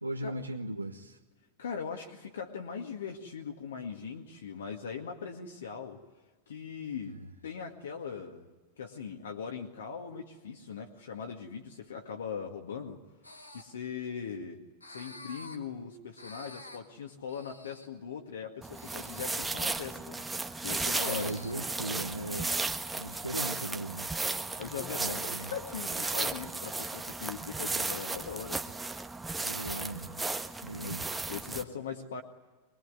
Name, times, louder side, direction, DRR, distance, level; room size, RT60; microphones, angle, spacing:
voice 1, 0.0-1.2 7.0-7.3 21.0-22.5 23.0-24.1 25.0-25.5 29.4-30.2 30.6-31.1, right 1 dB, 85° right, 1 dB, 1.3 m, -38 dB
voice 2, 1.6-6.0 6.5-7.1 7.4-8.5 8.8-13.0 13.5-14.6 14.9-20.2 20.6-21.4 24.6-28.6 30.8-31.0 31.3-32.2, left 6 dB, 65° left, 2 dB, 2.1 m, -40 dB
sound 1, 13.2-13.6 14.8-15.6 16.2-16.8 17.3-17.9 18.7-19.4 20.6-21.5, left 1 dB, 80° left, 2.8 m, -49 dB
sound 2, 18.6-31.6, right 3 dB, 10° right, 1.4 m, -35 dB
24.5 x 22.0 x 9.6 m, 1.3 s
figure-of-eight pair, 90°, 0 cm